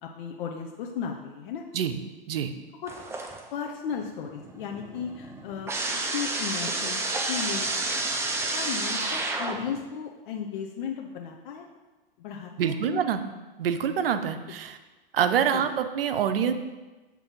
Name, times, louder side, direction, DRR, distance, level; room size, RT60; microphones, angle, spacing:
voice 1, 0.0-1.6 2.8-2.9 3.5-7.0 7.3-7.7 8.4-11.6 12.2-13.0 14.5-14.6 15.5-15.7, left 7 dB, 60° left, 1 dB, 0.7 m, -35 dB
sound 1, 2.9-3.7 4.0-9.8, right 2 dB, 10° right, 0.5 m, -30 dB
voice 2, 12.6-13.2 13.6-14.8 15.1-16.5, right 8 dB, 75° right, 9 dB, 0.6 m, -26 dB
7.0 x 3.0 x 5.3 m, 1.2 s
hypercardioid pair, 110°, 29 cm